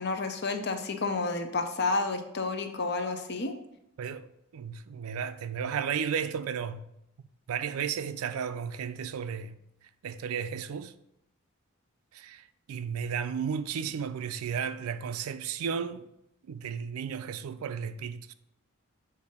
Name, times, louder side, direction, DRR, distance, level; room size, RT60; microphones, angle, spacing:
voice 1, 0.0-3.6, left 3 dB, 50° left, 0.6 m, -30 dB
voice 2, 4.5-6.9 7.5-9.6 10.0-10.9 12.1-16.1 16.5-18.3, right 7 dB, 90° right, 0.4 m, -34 dB
6.7 x 2.7 x 5.2 m
head